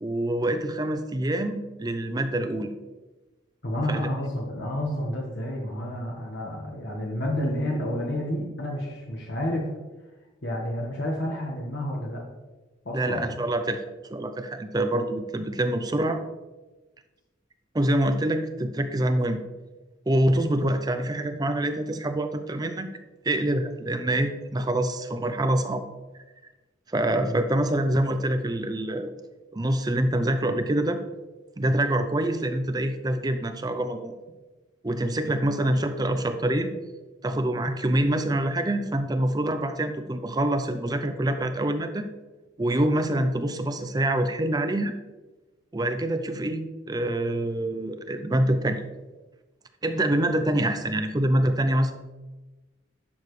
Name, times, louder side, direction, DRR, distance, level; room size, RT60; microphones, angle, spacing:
voice 1, 0.0-2.7 3.9-4.0 12.9-13.8 14.1-16.2 17.7-19.4 20.1-22.9 23.2-25.8 26.9-29.1 29.5-31.0 31.6-34.2 34.8-36.7 37.2-42.1 42.6-44.9 45.7-48.8 49.8-51.9, right 1 dB, 20° right, 8 dB, 0.5 m, -25 dB
voice 2, 3.6-9.7 10.4-12.2 12.8-13.3 27.2-27.4 35.6-35.7, equal, 60° left, -2 dB, 1.4 m, -30 dB
11.0 x 7.1 x 3.2 m, 1.2 s
head